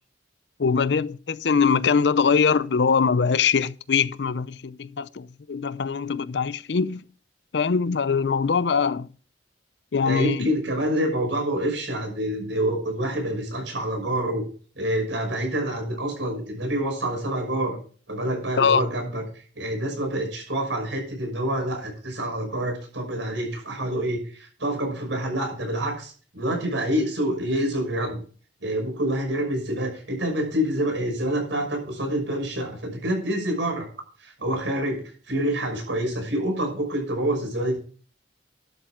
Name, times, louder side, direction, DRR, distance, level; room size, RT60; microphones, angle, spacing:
voice 1, 0.6-7.0 7.5-9.1 9.9-10.5 18.6-18.8, left 5 dB, 65° left, 0.5 m, -22 dB
voice 2, 10.0-14.4 14.8-17.8 18.1-28.2 28.6-33.9 34.2-37.8, right 1 dB, 80° right, 6.2 m, -27 dB
12.0 x 7.8 x 4.8 m
head